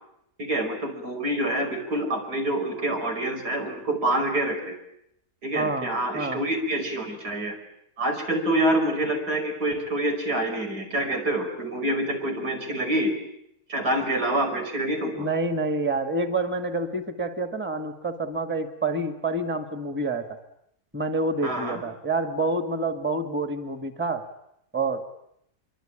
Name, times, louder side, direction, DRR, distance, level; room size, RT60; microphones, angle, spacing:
voice 1, 0.4-4.7 5.4-7.5 8.0-13.1 13.7-15.3 21.4-21.8, right 1 dB, 90° right, 4 dB, 5.8 m, -26 dB
voice 2, 5.6-5.9 6.1-6.4 15.2-20.3 20.9-24.2 24.7-25.0, right 2 dB, 5° right, 7 dB, 1.8 m, -27 dB
25.5 x 24.0 x 9.0 m, 0.76 s
omnidirectional pair, 1.7 m